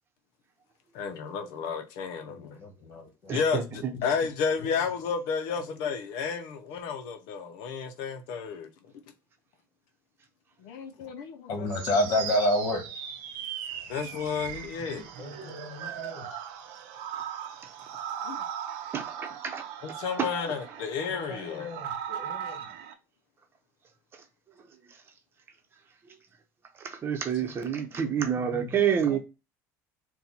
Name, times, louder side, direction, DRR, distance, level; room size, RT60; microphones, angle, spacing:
voice 1, 0.9-2.6 3.3-8.7 10.6-11.9 13.9-15.1 18.2-18.4 19.8-21.7, left 6 dB, 80° left, 0.6 m, -32 dB
voice 2, 2.3-3.4 11.5-12.8 15.2-16.2 21.3-22.6 27.4-28.8 29.1-29.2, left 1 dB, 55° left, 1.5 m, -31 dB
voice 3, 3.3-3.6 18.9-19.6 20.2-20.3 26.8-29.2, right 8 dB, 35° right, 0.8 m, -28 dB
sound 1, 11.7-22.9, right 9 dB, 90° right, 0.7 m, -38 dB
4.3 x 2.2 x 4.0 m
cardioid pair, 125°, 7 cm